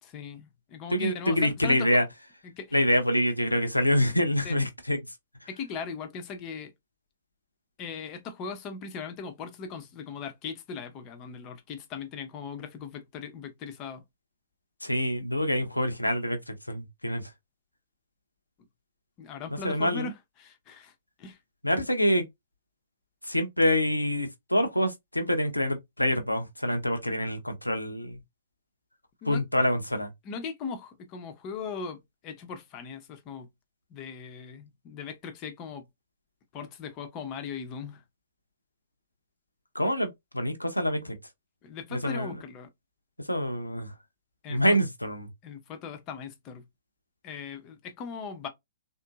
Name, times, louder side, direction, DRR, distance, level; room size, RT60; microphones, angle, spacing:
voice 1, 0.0-1.9 2.4-2.8 4.4-4.6 5.5-6.7 7.8-14.0 19.2-20.9 21.2-21.4 29.2-29.4 30.2-33.5 33.9-35.9 36.5-38.0 41.6-42.7 44.4-44.8 45.4-46.6 47.2-48.5, left 5 dB, 25° left, 0.7 m, -39 dB
voice 2, 0.9-2.0 2.7-5.0 14.8-17.2 19.5-20.1 21.6-22.2 23.3-28.2 29.3-30.1 39.7-40.1 40.3-41.2 41.9-42.3 43.3-43.9 44.5-45.3, equal, 85° left, 0.7 m, -26 dB
3.6 x 2.6 x 2.4 m
figure-of-eight pair, 115°, 0 cm